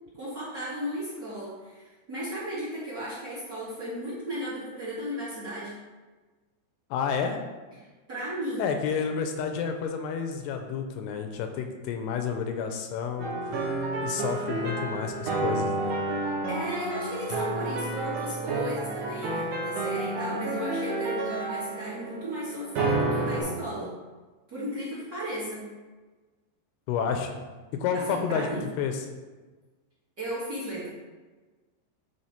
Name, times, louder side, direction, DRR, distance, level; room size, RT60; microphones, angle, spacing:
voice 1, 0.1-5.7 7.8-8.7 16.2-23.9 24.5-25.7 27.9-28.7 30.2-30.9, equal, 40° right, -8 dB, 1.3 m, -35 dB
voice 2, 6.9-7.4 8.6-13.3 14.0-15.9 26.9-27.4 27.8-28.5 28.8-29.0, left 6 dB, 80° left, 5 dB, 2.6 m, -30 dB
sound 1, 13.2-23.4, right 2 dB, 70° right, 1.5 m, -30 dB
9.7 x 3.4 x 4.4 m, 1.3 s
omnidirectional pair, 4.8 m